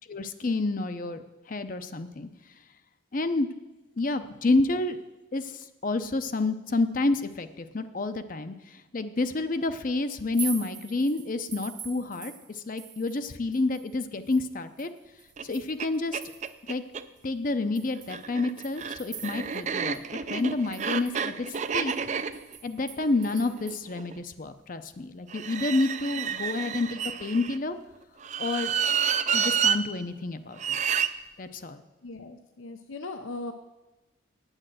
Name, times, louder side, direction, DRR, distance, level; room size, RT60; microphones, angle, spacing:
voice 1, 0.1-2.3 3.1-3.5 4.0-5.0 5.3-14.9 15.4-16.2 16.7-16.8 17.2-21.5 21.7-22.1 22.6-27.8 28.4-28.7 29.3-30.8 31.4-31.8, left 2 dB, 40° left, 10 dB, 0.6 m, -29 dB
sound 1, 10.2-13.3 13.5-16.7 17.2-17.3 17.8-19.7 19.9-20.0 20.4-23.8, right 7 dB, 20° right, 0.9 m, -44 dB
sound 2, 15.4-15.5 15.8-15.9 16.1-17.0 18.0-24.1 25.3-27.6 28.2-29.8 30.6-31.1, right 7 dB, 35° right, 0.4 m, -29 dB
voice 2, 32.0-33.5, left 2 dB, 85° left, 8 dB, 0.7 m, -39 dB
8.9 x 8.6 x 7.7 m, 1.1 s
head